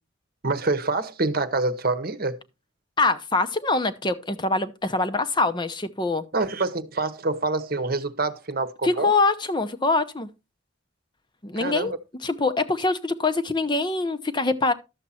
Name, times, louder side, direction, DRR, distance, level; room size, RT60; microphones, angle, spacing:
voice 1, 0.4-2.4 6.3-9.1 11.6-12.0, right 3 dB, 50° right, 1.0 m, -26 dB
voice 2, 3.0-6.2 8.8-10.3 11.4-11.9 12.2-14.7, left 3 dB, 25° left, 0.7 m, -24 dB
12.0 x 7.4 x 4.2 m
head